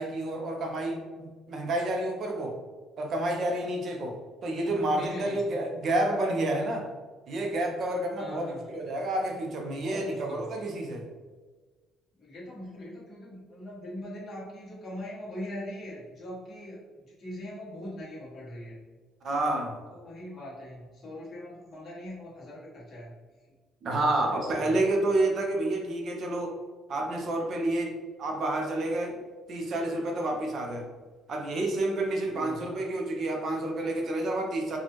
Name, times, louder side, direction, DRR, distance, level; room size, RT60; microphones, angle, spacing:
voice 1, 0.0-2.6 3.0-4.2 4.4-6.9 7.3-11.1 19.2-19.8 23.8-26.5 26.9-29.2 29.5-30.8 31.3-34.8, right 1 dB, 40° right, 2 dB, 0.6 m, -29 dB
voice 2, 4.9-5.4 8.2-8.6 9.7-10.5 12.2-18.8 19.9-23.1 23.4-23.5 24.1-24.8 32.2-32.6, left 1 dB, 30° left, -6 dB, 1.3 m, -41 dB
4.2 x 2.3 x 3.0 m, 1.4 s
cardioid pair, 175°, 0 cm